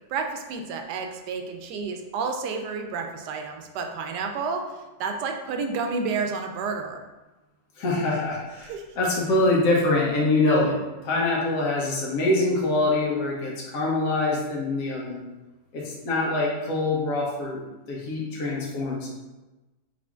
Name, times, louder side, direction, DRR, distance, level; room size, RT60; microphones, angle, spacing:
voice 1, 0.1-4.7 5.0-7.0 8.6-8.9, right 4 dB, 90° right, 4 dB, 1.2 m, -30 dB
voice 2, 7.8-10.8 11.0-15.2 15.7-17.6 17.9-19.1, left 2 dB, 65° left, -4 dB, 1.3 m, -24 dB
4.9 x 3.7 x 2.4 m, 1.1 s
omnidirectional pair, 1.7 m